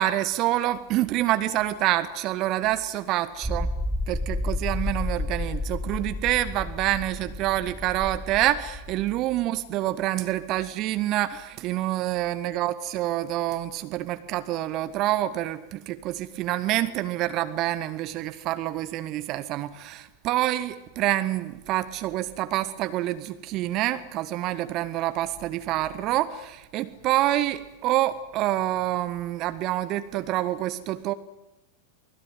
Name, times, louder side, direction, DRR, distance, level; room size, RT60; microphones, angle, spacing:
voice 1, 0.0-3.7 4.1-31.1, right 14 dB, 40° right, 12 dB, 1.4 m, -27 dB
sound 1, 3.4-9.0, left 2 dB, 5° right, 1.6 m, -31 dB
29.0 x 21.0 x 9.3 m, 0.95 s
figure-of-eight pair, 90°, 0 cm